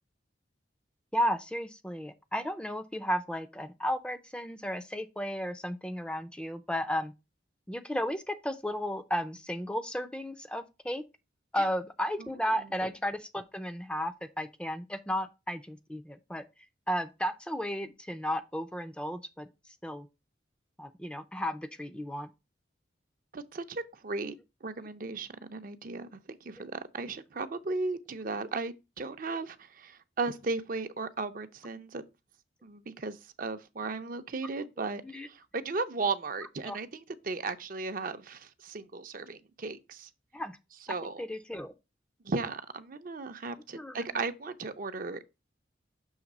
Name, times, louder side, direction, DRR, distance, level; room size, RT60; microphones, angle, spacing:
voice 1, 1.1-7.1 7.7-11.0 11.5-16.4 16.9-20.1 20.8-22.3 27.0-27.1 34.8-35.3 36.6-36.8 40.3-40.6 40.9-41.7 43.7-44.0, equal, 5° left, 0.4 m, -34 dB
voice 2, 23.3-24.4 24.6-32.0 32.6-36.9 37.2-40.1 40.9-41.2 42.2-45.2, right 3 dB, 50° right, 0.6 m, -36 dB
6.4 x 3.3 x 5.9 m
head